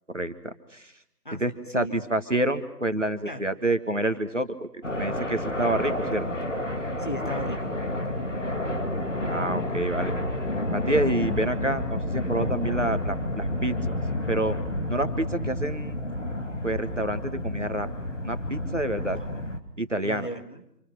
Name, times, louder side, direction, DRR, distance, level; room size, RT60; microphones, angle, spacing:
voice 1, 0.1-0.9 1.3-6.3 9.2-10.1 10.7-13.8 14.3-14.6 14.9-15.9 16.6-17.9 18.2-19.2 19.8-20.3, right 1 dB, 45° right, 9 dB, 1.8 m, -28 dB
voice 2, 1.2-2.0 3.2-3.5 7.0-7.8 20.0-20.7, right 1 dB, 30° left, 3 dB, 2.1 m, -36 dB
sound 1, 4.8-19.6, left 1 dB, 50° left, 2.7 m, -30 dB
28.5 x 28.0 x 6.1 m, 0.74 s
figure-of-eight pair, 175°, 49 cm